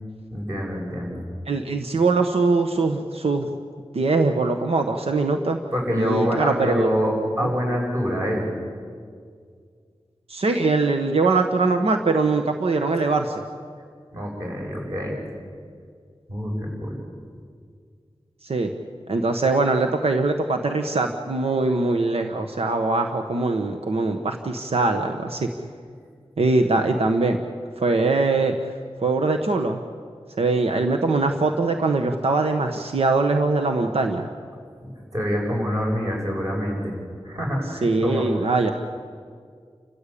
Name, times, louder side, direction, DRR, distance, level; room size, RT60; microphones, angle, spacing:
voice 1, 0.3-1.2 5.7-8.5 14.1-15.2 16.3-17.0 34.8-37.0 37.2-38.3, equal, 35° right, -1 dB, 7.5 m, -26 dB
voice 2, 1.5-3.5 3.9-5.6 6.0-6.9 7.4-7.5 10.3-13.4 18.4-18.7 19.1-25.5 26.4-27.4 27.8-28.5 29.0-29.8 30.4-34.3 37.8-38.7, right 3 dB, 85° right, 5 dB, 1.3 m, -22 dB
29.5 x 15.0 x 8.6 m, 2.1 s
wide cardioid pair, 95°, 10 cm